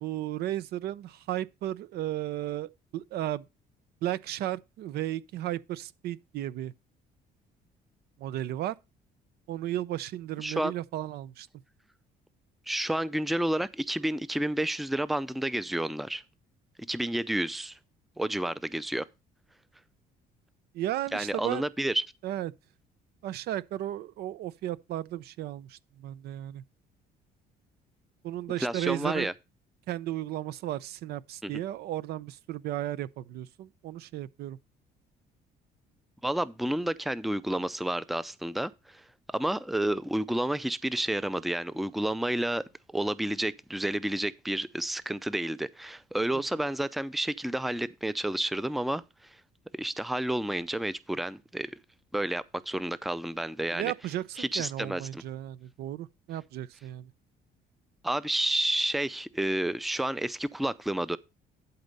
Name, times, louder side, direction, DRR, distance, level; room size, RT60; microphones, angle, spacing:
voice 1, 0.0-3.4 4.0-6.7 8.2-8.7 9.5-11.5 20.7-21.6 22.2-22.5 23.2-26.6 28.2-29.3 29.9-34.6 53.7-54.2 54.6-57.1, right 13 dB, 70° right, 0.6 m, -34 dB
voice 2, 10.4-10.7 12.7-16.2 16.9-17.8 18.2-19.0 21.1-22.0 28.6-29.3 31.4-31.5 36.2-39.0 39.3-42.6 42.9-49.0 49.8-51.8 52.1-53.9 54.4-55.2 58.0-61.2, right 1 dB, ahead, 0.5 m, -30 dB
11.5 x 4.3 x 5.3 m
cardioid pair, 110°, 17 cm